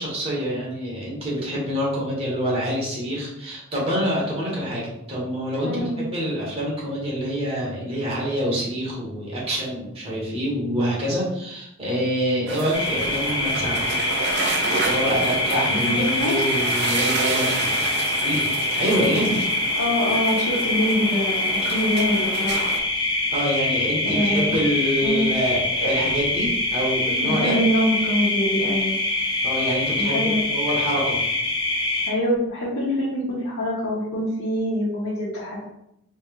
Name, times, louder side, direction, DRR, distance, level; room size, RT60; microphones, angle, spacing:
voice 1, 0.0-4.8 5.1-14.0 14.8-17.8 18.2-18.5 18.8-19.4 23.3-27.6 29.4-31.2, equal, 30° right, -5 dB, 1.4 m, -26 dB
voice 2, 5.6-6.0 15.7-16.4 19.7-22.7 23.1-23.2 24.0-24.6 25.0-25.3 27.2-29.0 30.0-30.4 32.1-35.7, equal, 80° left, -9 dB, 1.1 m, -24 dB
sound 1, 12.5-22.8, right 4 dB, 55° right, 0.5 m, -30 dB
sound 2, 12.7-32.1, left 2 dB, 20° left, 0.7 m, -24 dB
4.1 x 3.4 x 2.5 m, 0.80 s
head